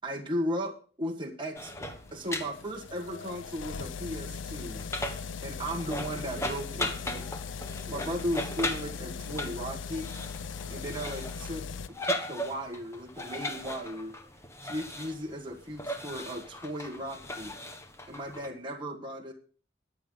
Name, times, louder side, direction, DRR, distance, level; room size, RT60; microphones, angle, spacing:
voice 1, 0.0-4.8 5.4-7.3 7.9-10.1 10.7-14.1 14.6-17.5 18.1-19.3, equal, 25° right, 0 dB, 1.4 m, -36 dB
sound 1, 1.6-11.9, left 5 dB, 85° left, 0.6 m, -39 dB
sound 2, 1.6-18.5, left 1 dB, 15° left, 1.4 m, -38 dB
21.5 x 7.6 x 3.8 m, 0.41 s
head